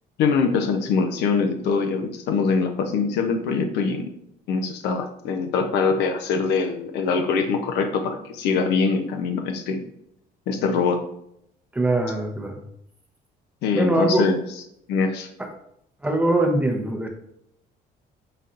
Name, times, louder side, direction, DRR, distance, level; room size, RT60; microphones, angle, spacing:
voice 1, 0.2-4.1 4.5-9.9 10.5-11.0 13.6-14.4 14.9-15.3, left 5 dB, 85° left, 5 dB, 0.6 m, -23 dB
voice 2, 11.7-12.6 13.7-14.3 15.4-15.5 16.0-17.1, right 2 dB, 10° right, 3 dB, 0.6 m, -22 dB
4.2 x 4.0 x 2.5 m, 0.73 s
cardioid pair, 110°, 17 cm